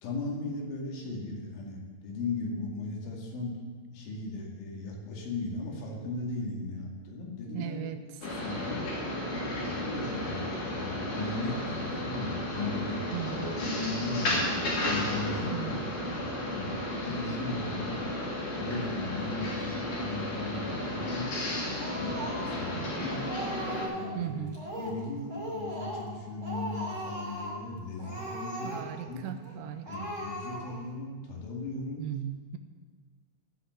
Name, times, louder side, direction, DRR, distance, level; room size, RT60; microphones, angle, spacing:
voice 1, 0.0-3.6 3.9-7.9 8.2-8.8 9.6-13.1 13.3-15.9 16.2-16.8 17.0-18.0 18.6-21.3 21.9-23.2 23.9-24.5 24.8-28.8 29.1-29.3 29.9-32.1, left 2 dB, 75° left, -1 dB, 4.5 m, -37 dB
voice 2, 7.5-8.0 13.1-13.5 15.5-15.8 16.0-16.3 22.7-23.1 24.2-24.6 28.6-30.1 32.0-32.6, right 11 dB, 80° right, 8 dB, 3.0 m, -37 dB
sound 1, 8.2-23.9, left 1 dB, 45° left, 3.8 m, -33 dB
Speech, 21.8-22.7 23.0-24.2 24.5-25.0 25.3-26.1 26.4-27.6 28.0-29.1 29.4-29.5 29.8-30.9, equal, 25° right, 4.2 m, -38 dB
15.5 x 5.8 x 8.0 m, 1.5 s
omnidirectional pair, 5.6 m